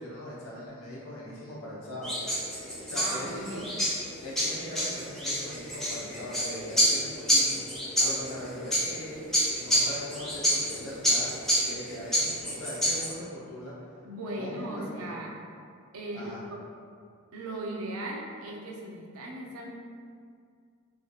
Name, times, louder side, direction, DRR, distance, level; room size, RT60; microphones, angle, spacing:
voice 1, 0.0-2.1 2.8-3.7 4.2-7.6 8.0-9.2 9.5-11.3 11.6-13.7 14.3-15.1 16.1-16.4, equal, 80° left, -7 dB, 0.8 m, -40 dB
sound 1, 2.0-13.1, equal, ahead, 0.5 m, -28 dB
voice 2, 3.0-3.7 14.0-15.4 15.9-16.6 17.3-19.7, right 1 dB, 80° right, -1 dB, 0.5 m, -37 dB
3.1 x 2.6 x 2.4 m, 2.2 s
head